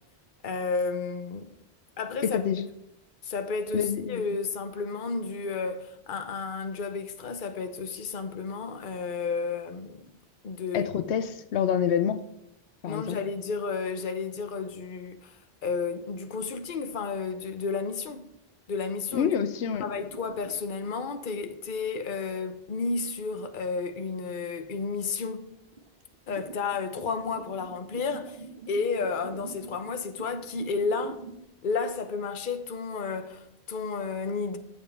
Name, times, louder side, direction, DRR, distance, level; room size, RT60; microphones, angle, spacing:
voice 1, 0.4-1.5 2.0-2.4 3.2-10.1 10.4-10.9 12.8-18.3 18.7-19.3 19.7-25.5 26.3-28.4 28.7-31.2 31.6-34.6, left 4 dB, 55° left, 1.0 m, -32 dB
voice 2, 2.2-2.7 3.7-4.2 10.7-12.2 12.8-13.2 19.1-19.8, left 8 dB, 90° left, 0.9 m, -27 dB
sound 1, 19.7-21.3 22.9-23.0 25.3-25.4 25.6-31.4, right 4 dB, 55° right, 1.2 m, -45 dB
14.0 x 7.2 x 3.5 m
omnidirectional pair, 1.1 m